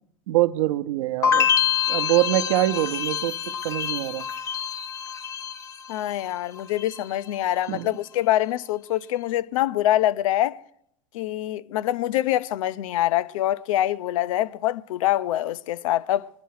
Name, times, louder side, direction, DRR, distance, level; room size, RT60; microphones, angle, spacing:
voice 1, 0.3-1.5 1.9-4.3 7.7-7.9, right 16 dB, 70° right, 0.7 m, -24 dB
sound 1, 1.2-6.3 6.5-7.2, left 8 dB, 20° left, 0.6 m, -26 dB
voice 2, 5.9-10.6 11.1-16.3, left 13 dB, 90° left, 0.5 m, -25 dB
21.5 x 10.0 x 4.8 m
supercardioid pair, 160°, 17 cm